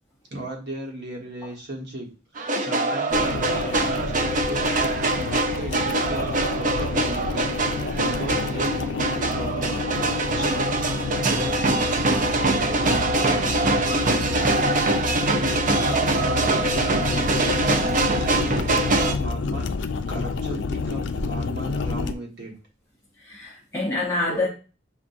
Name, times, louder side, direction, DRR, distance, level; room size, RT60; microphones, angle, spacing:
voice 1, 0.3-2.1 2.3-22.5, right 1 dB, 65° right, 1.3 m, -36 dB
sound 1, 2.4-19.1, right 2 dB, 45° right, 0.6 m, -23 dB
sound 2, 3.1-22.1, left 4 dB, 70° left, 0.4 m, -29 dB
voice 2, 23.2-24.5, left 2 dB, 15° left, 0.8 m, -27 dB
7.0 x 2.5 x 2.6 m
head